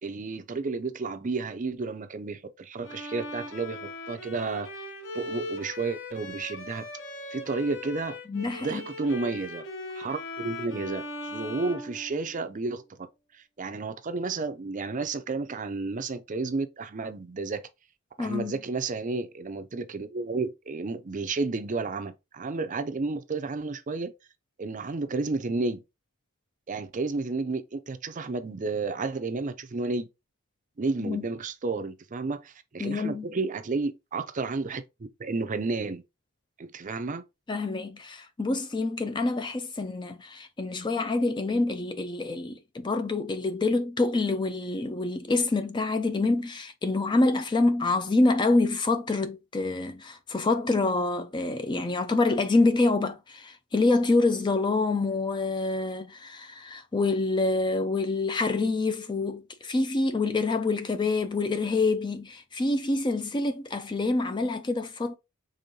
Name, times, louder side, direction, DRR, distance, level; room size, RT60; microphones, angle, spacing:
voice 1, 0.0-4.8 5.1-6.9 7.3-8.2 8.4-9.6 9.9-13.1 13.3-17.7 18.2-24.1 24.6-25.8 26.7-30.1 30.8-34.8 35.2-36.0 36.6-37.2, right 3 dB, 35° right, 0.5 m, -32 dB
Bowed string instrument, 2.8-12.6, left 1 dB, 60° left, 1.1 m, -39 dB
voice 2, 8.3-8.8 18.2-18.6 31.0-31.2 32.8-33.3 37.5-65.2, left 3 dB, 20° left, 0.4 m, -26 dB
5.2 x 3.5 x 2.8 m
head